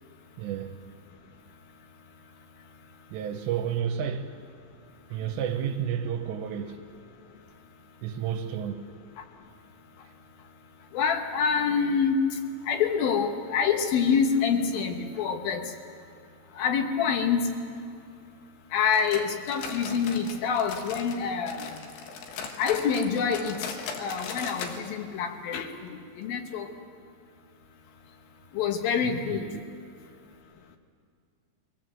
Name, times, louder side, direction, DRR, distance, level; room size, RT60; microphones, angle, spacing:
voice 1, 0.4-0.8 3.1-4.3 5.1-6.8 8.0-8.8 29.0-29.6, right 8 dB, 85° right, 3.0 m, -31 dB
voice 2, 10.9-12.2 12.7-15.6 16.6-17.5 18.7-21.7 22.6-23.6 24.0-25.9 26.2-26.7 28.5-29.5, left 6 dB, 70° left, 2.5 m, -26 dB
sound 1, 18.9-21.2 21.5-24.8 25.1-25.2 25.6-25.7 26.2-26.3, left 5 dB, 90° left, 3.8 m, -38 dB
23.5 x 17.5 x 7.7 m
omnidirectional pair, 5.1 m